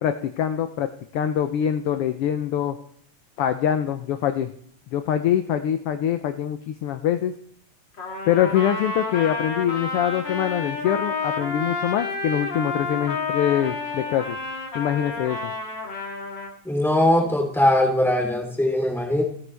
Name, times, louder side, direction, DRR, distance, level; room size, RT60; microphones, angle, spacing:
voice 1, 0.0-2.8 3.4-4.5 4.9-7.3 8.3-14.4 14.7-15.5, left 10 dB, 75° left, 8 dB, 1.4 m, -24 dB
Trumpet, 8.0-16.5, left 3 dB, 40° left, 2.9 m, -30 dB
voice 2, 16.6-19.2, left 1 dB, ahead, 0 dB, 3.2 m, -20 dB
28.0 x 9.6 x 3.4 m, 0.63 s
omnidirectional pair, 3.4 m